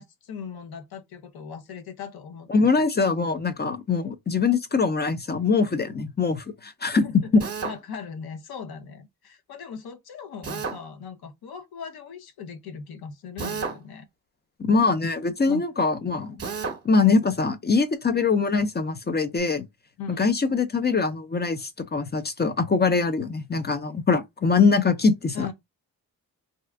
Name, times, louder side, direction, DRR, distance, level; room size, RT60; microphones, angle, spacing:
voice 1, 0.0-2.9 7.0-7.3 7.6-14.1 15.4-15.7 17.0-17.2 20.0-20.2 25.3-25.5, left 6 dB, 75° left, 0.8 m, -39 dB
voice 2, 2.5-7.1 7.3-7.4 14.6-16.4 16.8-19.7 20.2-25.5, left 4 dB, 25° left, 0.5 m, -23 dB
Drill, 7.4-7.8 10.4-10.8 13.4-13.8 16.4-16.8, right 5 dB, 40° right, 0.9 m, -31 dB
2.6 x 2.4 x 3.4 m
cardioid pair, 70°, 37 cm